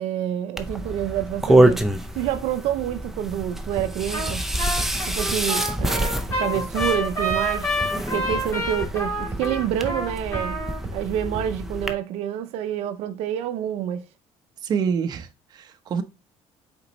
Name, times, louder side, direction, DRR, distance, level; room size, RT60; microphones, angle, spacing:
voice 1, 0.0-1.8 2.1-4.4 5.0-10.6 10.9-14.0, right 11 dB, 75° right, 0.6 m, -28 dB
sound 1, 0.6-11.9, right 1 dB, 5° right, 0.5 m, -26 dB
sound 2, 3.8-3.9 4.3-4.4 4.8-4.9 5.3-5.4 5.8-5.9 6.3-6.4 6.8-6.9 7.3-7.4 7.8-7.9 8.3-8.4 8.8-8.9 9.3-9.4 9.8-9.9 10.3-10.4 10.8-10.9 11.3-11.4, right 2 dB, 20° right, 2.6 m, -32 dB
Trumpet, 4.1-4.3 4.6-10.8, equal, 25° left, 2.3 m, -28 dB
voice 2, 14.6-16.0, right 6 dB, 40° right, 0.7 m, -26 dB
7.9 x 4.3 x 3.0 m
cardioid pair, 160°, 11 cm